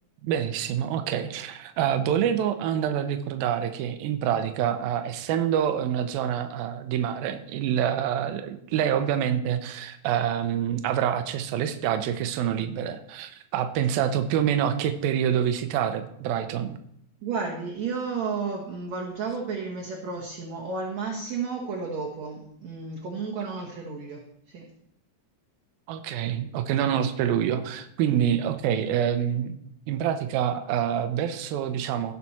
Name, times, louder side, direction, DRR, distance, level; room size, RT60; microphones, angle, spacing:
voice 1, 0.2-16.8 25.9-29.5 29.9-32.1, right 9 dB, 80° right, 8 dB, 2.5 m, -26 dB
voice 2, 17.2-24.7, right 5 dB, 60° right, -2 dB, 2.1 m, -32 dB
17.0 x 6.0 x 4.2 m, 0.71 s
omnidirectional pair, 4.5 m